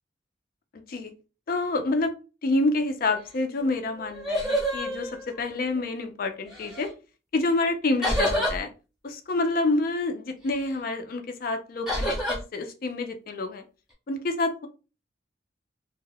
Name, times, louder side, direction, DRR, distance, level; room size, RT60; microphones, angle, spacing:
voice 1, 0.7-1.1 1.5-2.1 2.4-6.9 7.3-8.7 9.0-13.6 14.1-14.7, left 2 dB, 50° left, 7 dB, 0.4 m, -28 dB
sound 1, 3.6-3.7 4.0-5.8 6.5-6.9 8.0-8.6 11.9-12.4, equal, ahead, 0.7 m, -28 dB
2.1 x 2.0 x 3.3 m, 0.32 s
head